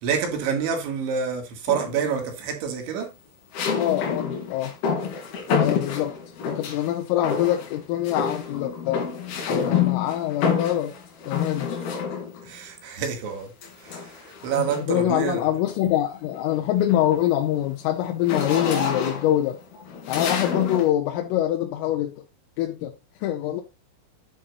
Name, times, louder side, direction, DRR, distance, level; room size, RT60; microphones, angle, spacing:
voice 1, 0.0-3.1 12.4-13.5 13.8-15.4, right 7 dB, 70° right, 4.4 m, -27 dB
sound 1, 1.7-2.2 3.5-6.9 7.2-7.8 8.0-12.5 13.6-15.0 15.5-15.8 16.1-20.9, left 6 dB, 55° left, 4.2 m, -28 dB
voice 2, 3.8-4.8 5.6-6.2 6.5-9.1 9.5-10.9 11.3-11.7 14.6-19.6 20.1-22.1 22.6-22.9 23.2-23.6, left 12 dB, 85° left, 3.6 m, -24 dB
10.5 x 10.0 x 2.6 m
omnidirectional pair, 5.7 m